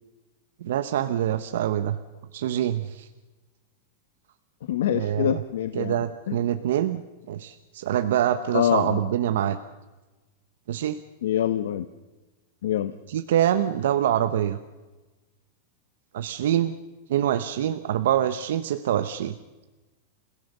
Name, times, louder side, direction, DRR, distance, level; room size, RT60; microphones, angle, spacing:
voice 1, 0.6-2.0 2.3-3.1 4.9-5.4 5.7-7.0 7.3-9.6 10.7-11.0 13.1-14.6 16.1-16.8 17.1-19.3, right 11 dB, 70° right, 9 dB, 1.1 m, -25 dB
voice 2, 4.7-6.4 8.5-9.0 11.2-11.9 12.6-12.9, left 11 dB, 75° left, 11 dB, 1.1 m, -25 dB
29.5 x 17.0 x 6.8 m, 1.2 s
supercardioid pair, 175°, 0 cm